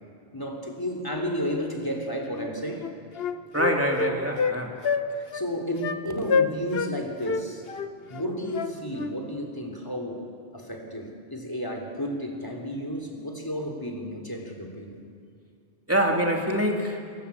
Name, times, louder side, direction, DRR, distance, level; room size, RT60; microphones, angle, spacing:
voice 1, 0.3-2.9 5.1-7.6 8.1-15.0, equal, 20° left, 3 dB, 3.2 m, -32 dB
Wind instrument woodwind instrument, 2.3-2.5 2.8-4.6 4.8-5.0 5.3-5.5 5.8-6.0 6.3-6.9 7.2-9.1, left 5 dB, 65° left, 1.3 m, -27 dB
voice 2, 3.5-4.7 15.9-17.0, equal, 15° right, 1 dB, 2.9 m, -25 dB
27.5 x 21.5 x 8.5 m, 2.5 s
omnidirectional pair, 1.1 m